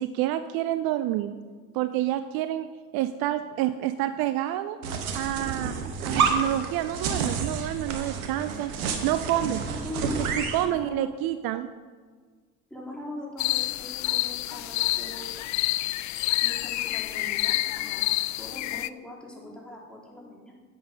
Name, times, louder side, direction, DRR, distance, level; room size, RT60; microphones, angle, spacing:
voice 1, 0.0-1.3 1.7-2.7 2.9-4.8 5.1-5.7 6.0-8.7 9.0-9.7 10.0-10.1 10.4-11.7, right 13 dB, 60° right, 12 dB, 0.6 m, -28 dB
sound 1, 4.8-10.7, right 5 dB, 80° right, 1.1 m, -29 dB
voice 2, 9.7-11.0 12.7-15.5 16.4-18.1 18.4-20.5, left 1 dB, ahead, -3 dB, 3.5 m, -40 dB
sound 2, 13.4-18.9, left 17 dB, 45° left, 0.4 m, -28 dB
11.5 x 8.1 x 5.0 m, 1.5 s
hypercardioid pair, 55°, 43 cm